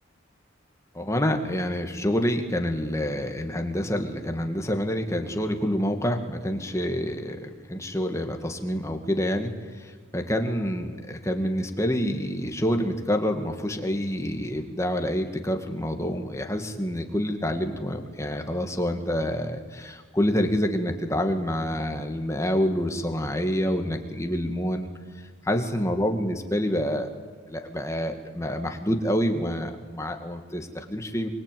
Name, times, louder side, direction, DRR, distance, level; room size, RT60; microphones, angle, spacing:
voice 1, 0.9-24.9 25.2-27.1 27.5-31.3, equal, 15° left, 5 dB, 2.0 m, -27 dB
24.5 x 24.0 x 9.3 m, 1.5 s
head